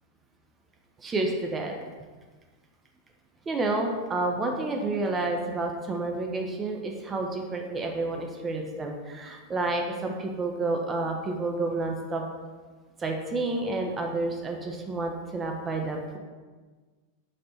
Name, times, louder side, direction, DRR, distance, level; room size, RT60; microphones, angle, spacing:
voice 1, 1.0-1.8 3.5-12.3 13.0-16.2, right 2 dB, 20° right, 2 dB, 0.3 m, -30 dB
3.2 x 2.5 x 2.8 m, 1.4 s
figure-of-eight pair, 90°, 0 cm